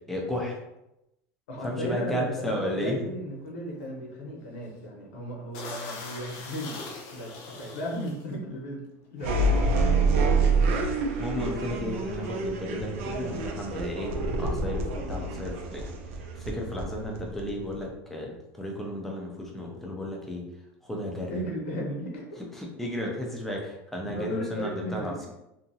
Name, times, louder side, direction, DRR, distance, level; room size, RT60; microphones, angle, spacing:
voice 1, 0.1-0.6 1.6-3.0 11.2-15.9 16.4-20.4 20.8-21.3 22.6-25.3, left 1 dB, 5° left, -2 dB, 0.5 m, -33 dB
voice 2, 1.5-6.8 7.1-8.8 9.1-10.4 21.3-22.2 24.1-25.2, equal, 90° left, -1 dB, 1.0 m, -35 dB
sound 1, 3.2-3.5 3.7-3.9 4.4-4.8 5.1-5.2 5.5-8.3 9.1-9.3 9.6-10.7, left 3 dB, 60° left, 0.5 m, -42 dB
sound 2, 9.2-17.8, right 3 dB, 85° right, 0.5 m, -27 dB
2.8 x 2.5 x 2.7 m, 0.88 s
supercardioid pair, 170°, 7 cm